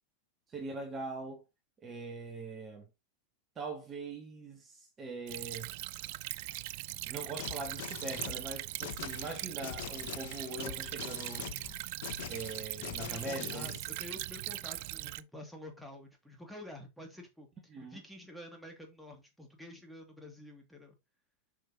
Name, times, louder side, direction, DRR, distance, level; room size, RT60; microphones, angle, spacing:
voice 1, 0.5-1.4 1.8-2.9 3.6-5.7 7.1-11.5 12.3-13.7 17.7-18.0, right 3 dB, 25° right, 1.9 m, -42 dB
Stream / Trickle dribble, 5.3-15.2, right 19 dB, 50° right, 0.4 m, -40 dB
sound 1, 7.4-13.8, left 13 dB, 55° left, 0.9 m, -44 dB
voice 2, 13.1-17.5 17.8-21.0, left 1 dB, ahead, 2.6 m, -49 dB
8.6 x 5.9 x 3.0 m
figure-of-eight pair, 90°, 0 cm